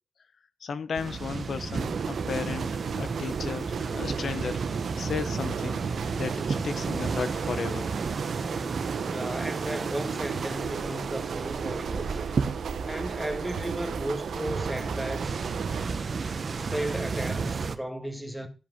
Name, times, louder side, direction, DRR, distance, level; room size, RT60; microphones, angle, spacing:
voice 1, 0.6-4.6 5.0-5.8 6.2-7.9, left 5 dB, 65° left, 0.9 m, -34 dB
sound 1, 0.9-17.8, right 4 dB, 50° right, 1.0 m, -33 dB
sound 2, 1.7-15.9, right 7 dB, 80° right, 0.9 m, -36 dB
voice 2, 9.1-12.2 12.9-15.4 16.7-18.5, right 1 dB, ahead, 1.7 m, -34 dB
12.5 x 5.3 x 5.2 m
wide cardioid pair, 110°, 0 cm